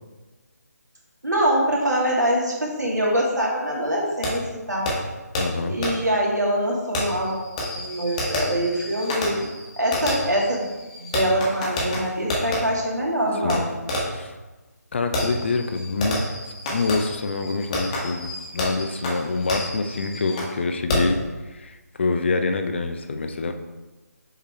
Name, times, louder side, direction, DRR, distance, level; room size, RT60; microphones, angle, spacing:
voice 1, 1.2-4.9 5.7-9.4 9.8-10.7 11.0-13.6, equal, 85° right, -3 dB, 2.1 m, -24 dB
Fireworks, 4.2-4.3 4.9-5.0 5.3-5.4 5.8-5.9 6.9-12.6 13.5-13.6 13.9-14.2 15.1-20.5 20.9-21.2, left 1 dB, 25° left, 1.3 m, -29 dB
voice 2, 5.4-5.8 13.4-13.6 14.1-14.3 14.9-16.2 16.7-21.2 21.5-23.5, left 3 dB, 40° left, 7 dB, 0.6 m, -26 dB
7.1 x 3.7 x 4.3 m, 1.2 s
figure-of-eight pair, 155°, 9 cm